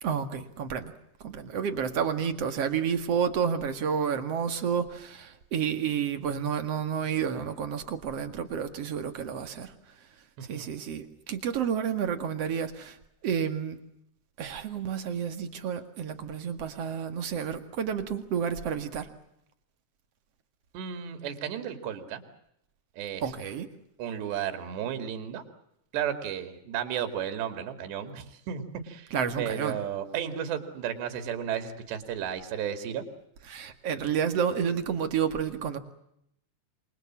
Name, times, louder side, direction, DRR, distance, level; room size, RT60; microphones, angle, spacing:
voice 1, 0.0-0.9 1.2-9.7 10.5-13.0 13.2-13.8 14.4-19.1 23.2-23.7 29.1-29.8 33.5-35.8, right 7 dB, 45° right, 8 dB, 2.3 m, -30 dB
voice 2, 20.7-22.2 23.0-23.2 24.0-25.4 25.9-29.1 29.4-33.0, right 9 dB, 70° right, 8 dB, 4.5 m, -33 dB
28.0 x 24.0 x 7.5 m, 0.77 s
omnidirectional pair, 5.1 m